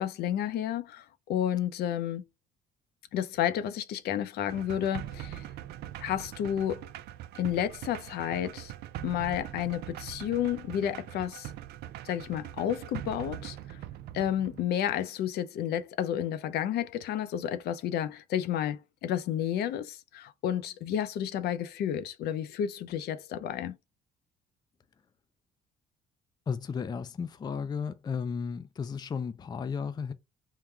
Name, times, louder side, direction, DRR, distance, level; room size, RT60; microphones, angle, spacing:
voice 1, 0.0-2.2 3.1-5.4 6.0-6.9 7.4-8.7 9.0-11.5 12.0-13.8 14.1-23.8, left 10 dB, 70° left, 0.6 m, -31 dB
sound 1, 4.5-14.6, right 12 dB, 75° right, 0.4 m, -42 dB
voice 2, 26.5-30.1, left 6 dB, 25° left, 0.4 m, -34 dB
3.7 x 2.2 x 4.3 m
cardioid pair, 110°, 17 cm